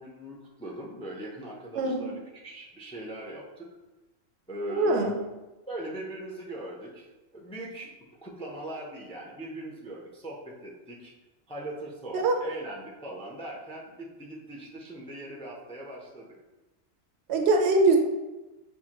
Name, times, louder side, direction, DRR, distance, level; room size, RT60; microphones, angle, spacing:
voice 1, 0.0-3.7 4.5-5.1 5.7-7.1 7.3-7.9 8.2-11.1 11.5-16.3, right 1 dB, 10° left, -3 dB, 0.4 m, -40 dB
voice 2, 1.8-2.1 4.7-5.2 12.1-12.4 17.3-18.0, right 3 dB, 70° right, 3 dB, 0.8 m, -23 dB
6.4 x 2.5 x 2.9 m, 1.1 s
omnidirectional pair, 1.2 m